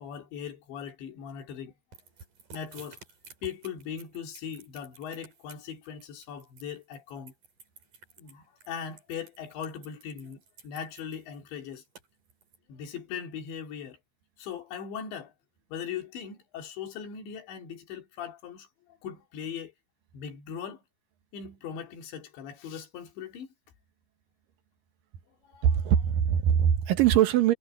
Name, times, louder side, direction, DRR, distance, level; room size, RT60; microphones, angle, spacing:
voice 1, 0.0-1.7 2.5-3.0 3.4-7.3 8.2-11.8 12.7-14.0 14.4-15.3 15.7-18.7 19.0-19.7 20.1-20.8 21.3-23.5 25.4-25.8, left 7 dB, 80° left, 4.9 m, -39 dB
sound 1, 1.9-12.6, right 5 dB, 50° right, 6.9 m, -52 dB
voice 2, 25.6-27.5, right 9 dB, 65° right, 2.5 m, -22 dB
omnidirectional pair, 5.1 m